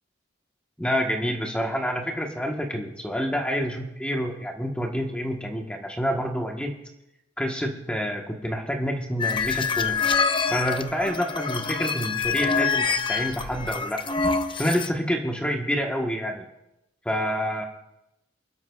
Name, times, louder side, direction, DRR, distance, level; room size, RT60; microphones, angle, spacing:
voice 1, 0.8-6.8 7.4-10.1 10.5-14.0 14.6-16.4 17.0-17.6, equal, 5° left, 1 dB, 1.2 m, -28 dB
sound 1, 9.2-14.9, left 5 dB, 25° left, 0.7 m, -26 dB
27.5 x 12.5 x 2.4 m, 0.89 s
head